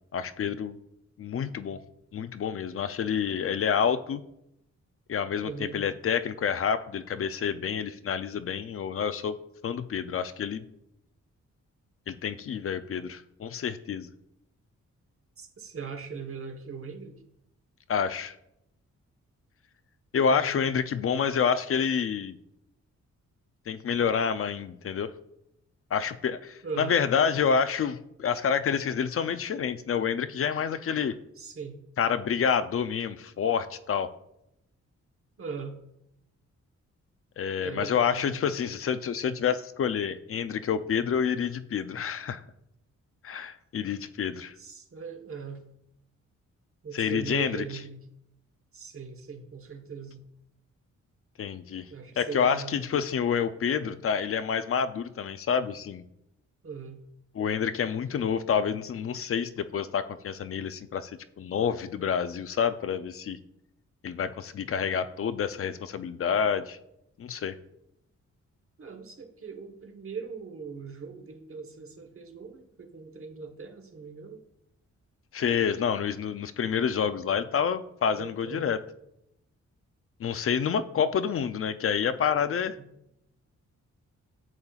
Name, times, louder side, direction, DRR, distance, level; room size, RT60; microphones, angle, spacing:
voice 1, 0.1-0.8 1.2-1.8 2.1-4.2 5.1-9.4 9.6-10.6 12.1-14.1 17.9-18.3 20.1-22.4 23.7-25.1 25.9-31.1 32.0-34.1 37.4-42.4 43.2-44.5 46.9-47.6 51.4-51.9 52.2-56.0 57.3-61.1 61.4-63.4 64.0-66.8 67.2-67.6 75.3-78.8 80.2-82.8, left 7 dB, 50° left, 12 dB, 0.5 m, -28 dB
voice 2, 5.4-5.8 15.4-17.1 20.3-20.6 26.6-27.0 31.4-31.8 35.4-35.8 37.6-38.4 44.6-45.6 46.8-48.0 48.7-50.2 51.9-52.9 53.8-54.0 56.6-57.0 68.8-74.4 78.1-78.7, right 5 dB, 45° right, 5 dB, 1.1 m, -40 dB
10.5 x 7.2 x 2.4 m, 0.80 s
cardioid pair, 105°, 29 cm